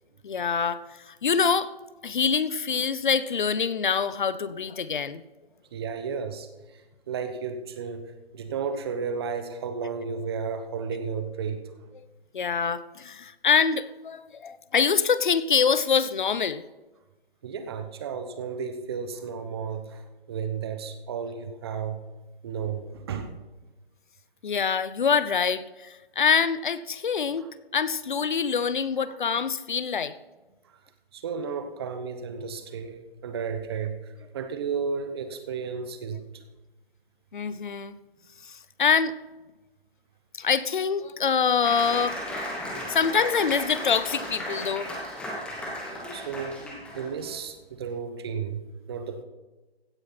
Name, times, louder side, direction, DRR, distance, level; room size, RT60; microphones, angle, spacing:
voice 1, 0.2-0.8 1.1-1.7 2.0-5.2 12.3-16.6 24.4-27.5 27.7-30.1 37.3-37.9 38.5-39.1 40.4-42.2 42.9-44.9, left 6 dB, 50° left, 15 dB, 0.8 m, -25 dB
voice 2, 5.7-8.1 8.3-11.9 17.4-22.0 22.4-23.3 27.4-27.5 31.1-36.2 46.1-46.6 46.9-48.6 48.9-49.2, right 6 dB, 25° right, 9 dB, 1.0 m, -33 dB
Applause, 41.6-47.4, left 1 dB, 5° left, 1.1 m, -35 dB
16.0 x 9.6 x 4.3 m, 1.2 s
figure-of-eight pair, 150°, 31 cm